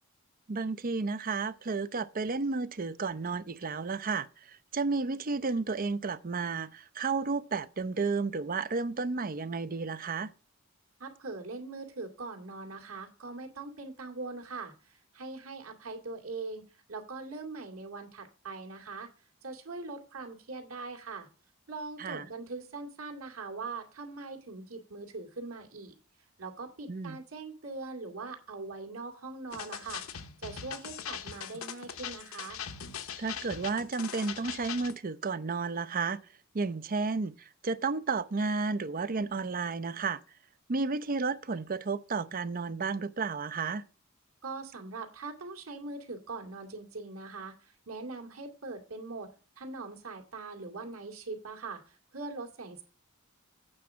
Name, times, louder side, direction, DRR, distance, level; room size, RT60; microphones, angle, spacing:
voice 1, 0.5-10.3 22.0-22.3 26.9-27.2 33.2-36.2 36.5-37.3 37.6-40.2 40.7-43.8, right 4 dB, 40° right, 0.6 m, -32 dB
voice 2, 11.0-19.1 19.4-21.3 21.7-25.9 26.4-32.6 44.4-49.3 49.6-52.8, right 3 dB, 85° right, 2.5 m, -42 dB
sound 1, 29.5-35.0, left 8 dB, 85° left, 0.9 m, -41 dB
8.8 x 4.7 x 7.4 m
head